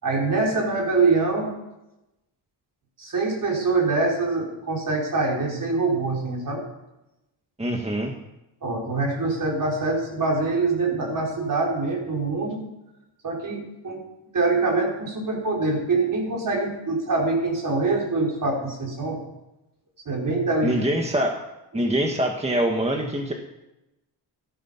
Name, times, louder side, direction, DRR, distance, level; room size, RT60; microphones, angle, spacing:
voice 1, 0.0-1.5 3.0-6.6 8.6-12.6 13.2-14.0 14.3-19.2 20.0-20.8 21.7-21.9, right 3 dB, 45° right, -1 dB, 5.1 m, -24 dB
voice 2, 7.6-8.1 20.6-21.4 21.7-23.3, right 1 dB, 15° right, 2 dB, 1.6 m, -24 dB
14.5 x 13.0 x 5.8 m, 0.96 s
cardioid pair, 105°, 45 cm